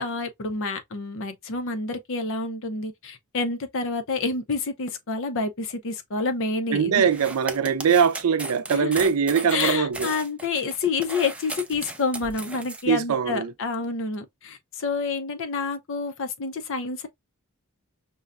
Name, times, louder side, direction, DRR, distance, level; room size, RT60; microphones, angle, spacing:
voice 1, 0.0-7.1 8.7-9.0 9.5-17.1, left 4 dB, 65° left, 0.7 m, -28 dB
voice 2, 6.7-10.1 12.9-13.5, right 7 dB, 85° right, 0.5 m, -22 dB
sound 1, 7.1-12.8, right 2 dB, 5° right, 0.4 m, -36 dB
5.3 x 2.2 x 2.4 m
head